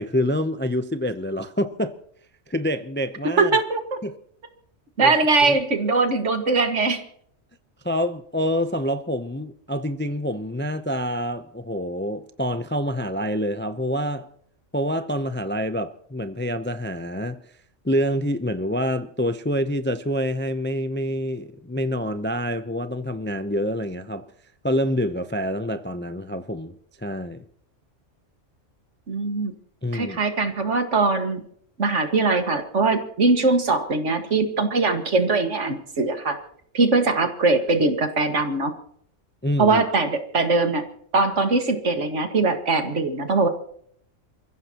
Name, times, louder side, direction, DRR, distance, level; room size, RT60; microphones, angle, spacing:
voice 1, 0.0-1.9 2.5-3.6 4.0-4.2 5.0-5.1 7.8-14.3 14.7-17.4 17.8-24.2 24.6-27.4 29.8-30.2 39.4-39.8, equal, 15° left, 0.5 m, -26 dB
voice 2, 3.4-4.0 5.0-7.0 29.1-29.5 29.9-31.4 31.8-36.4 36.7-38.7 39.6-40.8 41.1-43.5, right 3 dB, 70° right, 2.1 m, -21 dB
28.5 x 15.0 x 2.9 m
omnidirectional pair, 1.3 m